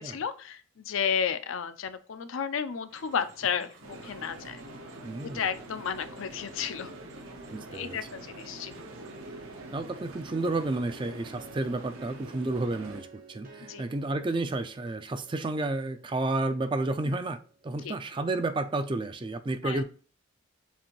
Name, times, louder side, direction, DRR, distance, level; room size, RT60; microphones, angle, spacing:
voice 1, 0.0-4.6 5.2-6.9 7.7-8.7 13.7-13.9 17.0-17.1 17.8-17.9 19.6-19.8, left 7 dB, 70° left, 0.5 m, -32 dB
sound 1, 2.9-12.2, right 1 dB, 60° right, 1.1 m, -54 dB
sound 2, 3.8-13.0, right 1 dB, 80° right, 0.9 m, -45 dB
voice 2, 5.0-5.4 7.5-8.0 9.7-17.4 17.6-19.8, right 2 dB, 25° right, 0.3 m, -31 dB
sound 3, 8.6-18.2, right 4 dB, 40° right, 0.7 m, -54 dB
7.1 x 2.6 x 2.9 m
head